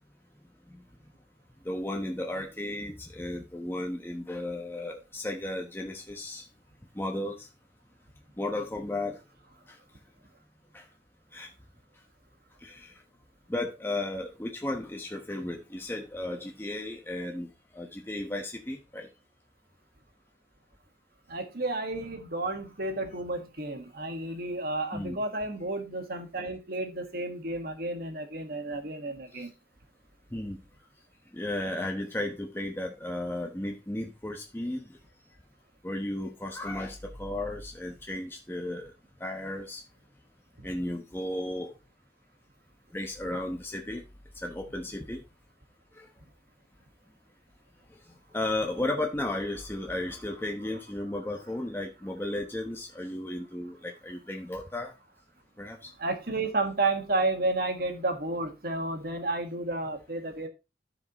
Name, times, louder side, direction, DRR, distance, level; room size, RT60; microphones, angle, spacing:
voice 1, 1.6-6.5 6.9-7.5 8.4-9.2 9.7-9.8 10.7-10.9 11.3-11.5 12.6-13.0 13.5-19.1 24.9-25.2 29.3-29.5 30.3-30.6 31.3-35.0 35.8-38.9 39.2-39.8 40.6-41.7 42.9-44.0 44.4-45.2 45.9-46.1 48.1-54.9 55.6-55.9, left 1 dB, 15° left, 1.0 m, -34 dB
voice 2, 21.3-29.5 40.6-40.7 56.0-60.5, right 2 dB, 55° right, 1.7 m, -31 dB
14.5 x 4.9 x 2.9 m
head